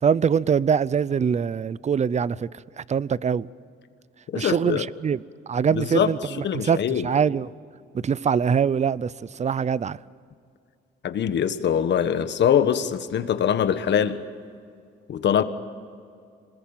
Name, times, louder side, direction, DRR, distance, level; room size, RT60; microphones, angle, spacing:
voice 1, 0.0-2.5 2.8-3.5 4.3-5.2 5.5-6.8 7.0-7.5 7.9-10.0, right 7 dB, 35° right, 0.6 m, -23 dB
voice 2, 4.3-4.9 5.7-7.1 11.0-14.2 15.1-15.4, left 8 dB, 65° left, 1.5 m, -23 dB
27.0 x 20.5 x 9.0 m
cardioid pair, 90°, 20 cm